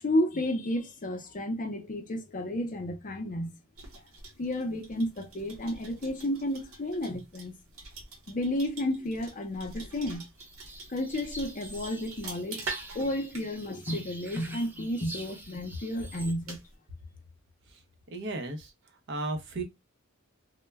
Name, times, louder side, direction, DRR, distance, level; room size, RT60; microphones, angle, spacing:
voice 1, 0.0-3.5 4.4-7.6 8.3-10.3 10.9-12.6 12.9-16.6, left 1 dB, 40° left, 0.5 m, -32 dB
sound 1, 3.7-16.7, right 3 dB, 85° right, 0.9 m, -46 dB
sound 2, 10.4-16.3, right 1 dB, 10° right, 0.4 m, -46 dB
voice 2, 18.1-18.7 19.1-19.6, right 2 dB, 60° right, 0.7 m, -34 dB
2.1 x 2.1 x 3.3 m
head